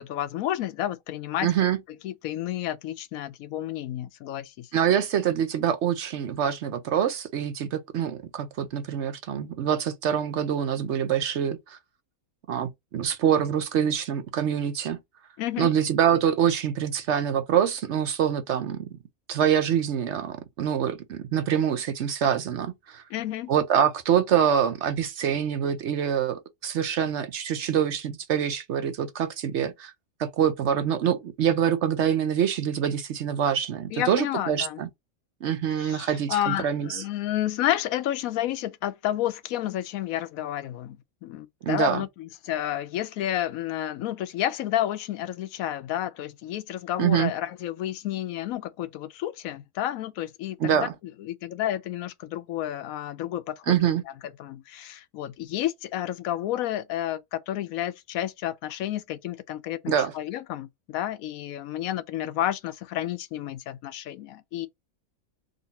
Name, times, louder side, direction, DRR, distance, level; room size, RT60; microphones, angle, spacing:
voice 1, 0.0-1.5 2.0-4.7 15.4-15.7 23.1-23.5 33.9-34.8 35.8-50.9 51.2-53.8 54.4-64.7, left 12 dB, 80° left, 1.0 m, -31 dB
voice 2, 1.4-1.8 4.7-11.8 12.5-15.0 15.6-18.9 19.3-23.0 23.5-29.9 30.2-34.9 35.4-37.0 41.6-42.0 47.0-47.3 50.6-50.9 53.7-54.0 59.9-60.1, right 9 dB, 65° right, 0.8 m, -25 dB
3.8 x 2.6 x 4.0 m
omnidirectional pair, 1.5 m